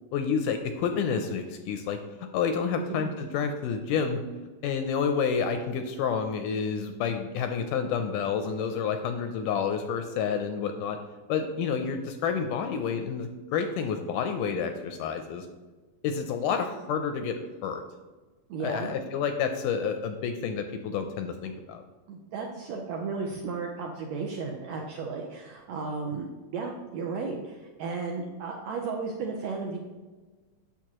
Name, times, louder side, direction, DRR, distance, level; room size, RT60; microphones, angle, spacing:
voice 1, 0.1-2.0 2.3-4.2 4.6-11.0 11.3-15.5 16.0-17.8 18.6-21.8, left 6 dB, 80° left, 6 dB, 2.0 m, -29 dB
voice 2, 2.8-3.1 18.5-18.9 22.1-26.3 26.5-29.8, right 4 dB, 85° right, 1 dB, 1.5 m, -34 dB
9.4 x 7.2 x 3.0 m, 1.2 s
omnidirectional pair, 4.1 m